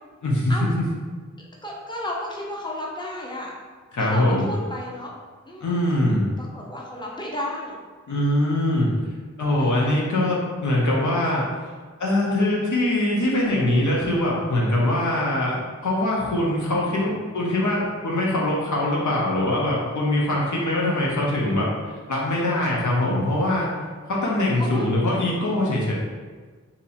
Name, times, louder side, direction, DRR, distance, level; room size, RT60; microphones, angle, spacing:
voice 1, 0.2-0.8 3.9-4.5 5.6-6.2 8.1-8.9 9.4-11.5 12.0-15.5 15.8-23.7 24.1-25.9, left 1 dB, 85° left, -4 dB, 0.8 m, -22 dB
voice 2, 1.4-3.5 4.0-5.1 5.5-5.7 6.4-7.8 9.6-9.9 24.6-24.9, left 1 dB, 15° left, -3 dB, 0.8 m, -33 dB
2.9 x 2.7 x 4.1 m, 1.4 s
wide cardioid pair, 65°, 29 cm